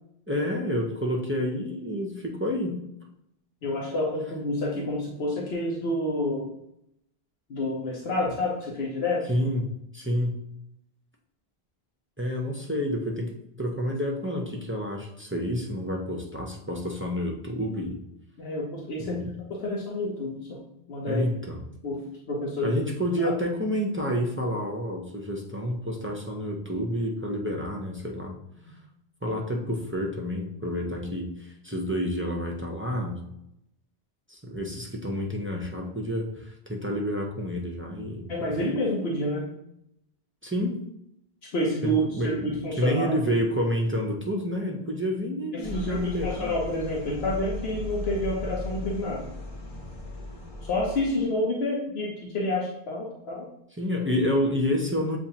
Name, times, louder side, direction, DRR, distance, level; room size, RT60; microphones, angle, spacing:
voice 1, 0.3-2.9 9.3-10.4 12.2-18.0 19.0-19.3 21.1-21.6 22.6-28.4 29.2-33.3 34.3-38.3 40.4-40.8 41.8-46.5 53.8-55.2, equal, 15° right, -1 dB, 0.4 m, -29 dB
voice 2, 3.6-6.5 7.5-9.3 18.4-19.2 19.5-21.2 21.8-22.8 23.2-23.3 38.3-39.5 41.4-43.1 45.5-49.3 50.6-53.5, left 1 dB, 80° left, -3 dB, 1.0 m, -29 dB
sound 1, 45.6-51.2, left 1 dB, 40° left, 0.8 m, -37 dB
7.1 x 2.5 x 2.8 m, 0.79 s
omnidirectional pair, 1.0 m